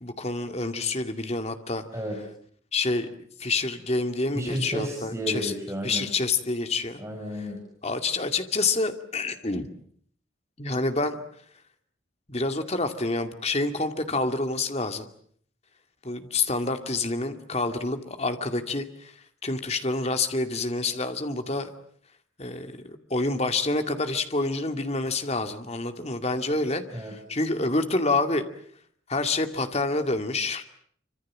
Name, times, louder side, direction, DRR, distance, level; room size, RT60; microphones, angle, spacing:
voice 1, 0.0-1.8 2.7-3.1 3.4-5.5 5.8-7.0 7.8-9.7 10.6-11.2 12.3-15.1 16.0-19.1 19.4-21.7 22.4-28.5 29.1-30.6, left 3 dB, 30° left, 7 dB, 2.4 m, -27 dB
voice 2, 4.3-6.1 7.0-7.6 26.9-27.1, equal, 15° right, 1 dB, 5.0 m, -32 dB
27.0 x 25.5 x 7.5 m, 0.62 s
head